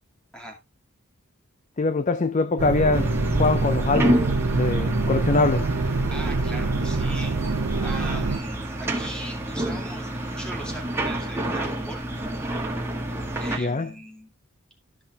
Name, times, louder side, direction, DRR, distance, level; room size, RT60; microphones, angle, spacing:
voice 1, 1.8-3.1 3.4-4.3 4.5-5.7 13.6-13.9, left 3 dB, 35° left, 0.5 m, -23 dB
sound 1, 2.6-8.4, right 3 dB, 75° right, 0.7 m, -26 dB
sound 2, 2.9-13.6, right 1 dB, 10° right, 1.6 m, -28 dB
voice 2, 6.1-7.3 7.8-12.1 13.4-14.3, right 1 dB, 5° left, 2.4 m, -39 dB
12.5 x 5.8 x 3.4 m
head